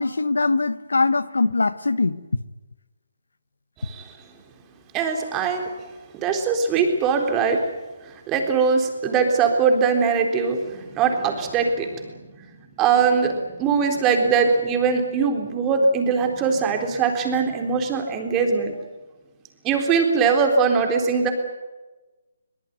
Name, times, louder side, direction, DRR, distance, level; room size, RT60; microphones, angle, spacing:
voice 1, 0.0-2.2, left 3 dB, 85° left, 15 dB, 1.2 m, -22 dB
voice 2, 3.8-4.1 4.9-5.7 6.1-7.6 8.0-12.1 12.8-18.7 19.6-21.3, right 5 dB, 20° right, 4 dB, 3.9 m, -21 dB
22.5 x 20.5 x 9.5 m, 1.2 s
figure-of-eight pair, 150°, 0 cm